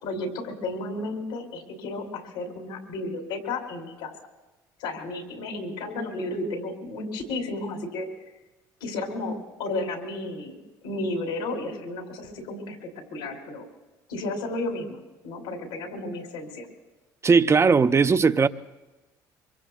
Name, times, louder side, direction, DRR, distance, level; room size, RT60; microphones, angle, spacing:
voice 1, 0.0-4.1 4.8-8.1 8.8-10.6 10.8-12.8 13.1-13.6 14.1-15.0 15.2-16.7, left 2 dB, 85° left, 2.6 m, -32 dB
voice 2, 17.2-18.5, right 5 dB, 30° right, 0.5 m, -18 dB
24.0 x 23.0 x 2.3 m
supercardioid pair, 70°, 10 cm